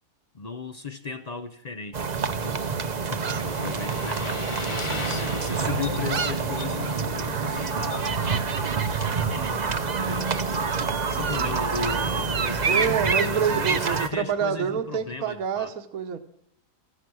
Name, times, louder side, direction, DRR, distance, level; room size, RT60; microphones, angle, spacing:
voice 1, 0.3-2.6 3.1-10.4 11.0-15.7, left 4 dB, 65° left, 0.4 m, -36 dB
sound 1, 1.9-14.1, right 5 dB, 40° right, 0.6 m, -27 dB
Motorcycle, 2.2-14.8, left 2 dB, 20° left, 1.0 m, -41 dB
sound 2, 5.5-12.4, left 1 dB, 50° left, 2.6 m, -40 dB
voice 2, 12.6-16.2, right 7 dB, 65° right, 1.4 m, -27 dB
15.0 x 15.0 x 6.1 m
omnidirectional pair, 1.7 m